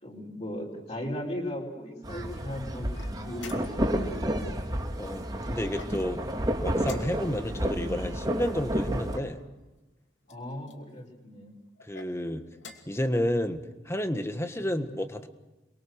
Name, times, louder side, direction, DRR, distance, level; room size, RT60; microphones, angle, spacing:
voice 1, 0.0-3.6 3.9-4.4 7.3-7.5 10.3-11.5, equal, 35° left, -2 dB, 5.2 m, -37 dB
sound 1, 2.0-9.2, equal, 20° right, 3.1 m, -31 dB
sound 2, 2.9-4.0 5.7-6.3 6.8-7.5 8.4-9.4 10.2-10.8 11.8-12.1 12.5-13.0, left 4 dB, 90° left, 2.7 m, -48 dB
voice 2, 5.0-6.2 6.6-9.4 11.8-12.4 12.9-13.6 13.8-15.3, equal, 15° left, 7 dB, 1.5 m, -30 dB
29.5 x 22.5 x 6.6 m, 1.1 s
head